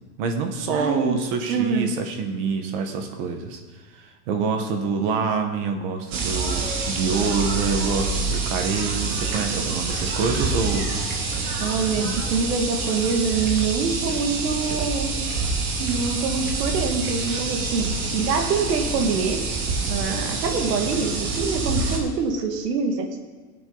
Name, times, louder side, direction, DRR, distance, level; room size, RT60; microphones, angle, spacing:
voice 1, 0.2-3.6 3.9-10.9, right 5 dB, 35° right, 5 dB, 1.3 m, -26 dB
voice 2, 0.7-1.2 1.5-1.9 11.6-15.2 15.8-19.4 19.9-23.2, right 5 dB, 90° right, 3 dB, 2.0 m, -25 dB
sound 1, 6.1-22.0, right 3 dB, 60° right, 2.7 m, -27 dB
19.5 x 8.2 x 4.0 m, 1.4 s
supercardioid pair, 180°, 47 cm